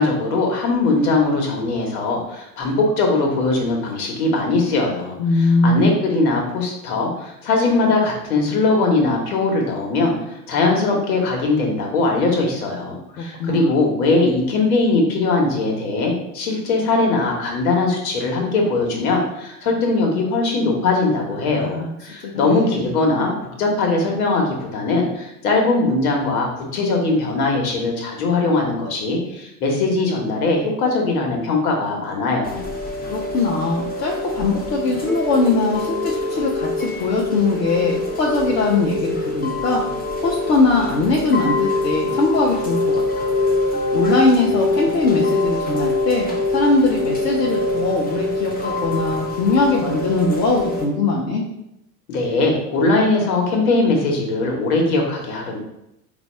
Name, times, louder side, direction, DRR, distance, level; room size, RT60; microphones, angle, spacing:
voice 1, 0.0-32.7 52.1-55.6, left 3 dB, 60° left, 1 dB, 1.4 m, -20 dB
voice 2, 5.2-5.9 13.2-13.7 21.4-21.9 22.2-22.8 33.1-39.8 40.2-43.3 43.7-51.4, left 3 dB, 80° left, -3 dB, 0.9 m, -21 dB
Chime / Rain, 32.4-50.8, left 2 dB, 20° left, 0.9 m, -24 dB
4.0 x 2.6 x 4.4 m, 0.83 s
figure-of-eight pair, 80°, 48 cm